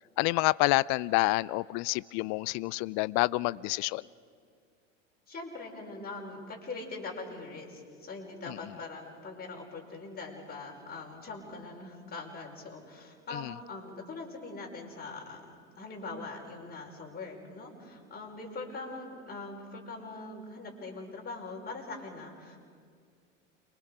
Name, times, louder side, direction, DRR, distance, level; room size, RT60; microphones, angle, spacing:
voice 1, 0.2-4.0 8.5-8.6 13.3-13.5, left 21 dB, 45° left, 0.5 m, -28 dB
voice 2, 5.3-22.6, left 3 dB, 25° left, 5.2 m, -42 dB
29.5 x 23.5 x 4.9 m
hypercardioid pair, 90°, 38 cm